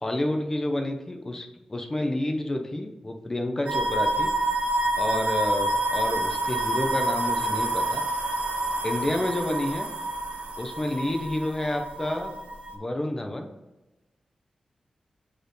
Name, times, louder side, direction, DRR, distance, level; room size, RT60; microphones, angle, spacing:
voice 1, 0.0-4.3 5.0-8.0 8.8-9.9 10.6-12.3 12.7-13.5, left 1 dB, 20° left, 3 dB, 0.7 m, -29 dB
sound 1, 3.7-12.7, right 1 dB, 90° right, 1.0 m, -28 dB
7.4 x 4.4 x 3.1 m, 1.1 s
wide cardioid pair, 180°, 2 cm